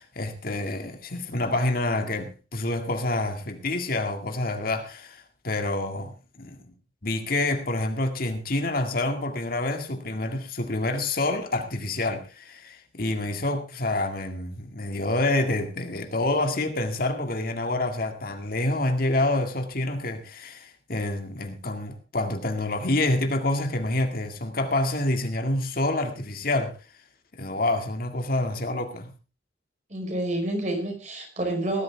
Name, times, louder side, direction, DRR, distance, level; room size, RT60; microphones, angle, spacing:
voice 1, 0.0-6.6 7.0-26.7 27.4-29.1, left 2 dB, 55° left, 2.1 m, -27 dB
voice 2, 29.9-31.8, right 1 dB, 45° right, 5.3 m, -28 dB
18.5 x 12.5 x 3.4 m
head